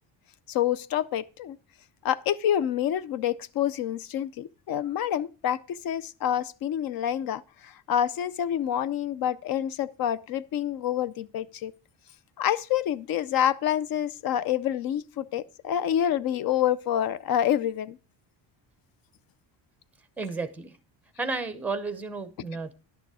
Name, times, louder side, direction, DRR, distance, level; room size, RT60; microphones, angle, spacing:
voice 1, 0.5-1.6 2.0-11.7 12.4-18.0, left 10 dB, 50° left, 0.5 m, -27 dB
voice 2, 20.2-20.7 21.2-22.7, right 3 dB, 5° right, 0.6 m, -32 dB
11.0 x 6.9 x 4.8 m
cardioid pair, 180°, 46 cm